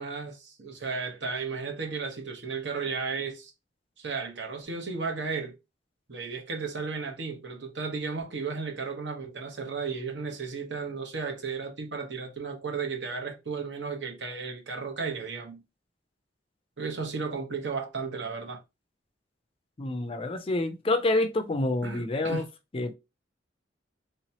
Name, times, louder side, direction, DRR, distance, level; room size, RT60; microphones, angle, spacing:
voice 1, 0.0-3.5 4.0-5.5 6.1-15.6 16.8-18.6 21.8-22.4, right 4 dB, 75° right, 1.0 m, -34 dB
voice 2, 19.8-22.4 22.7-23.0, left 2 dB, 30° left, 0.4 m, -27 dB
3.3 x 3.0 x 2.8 m
head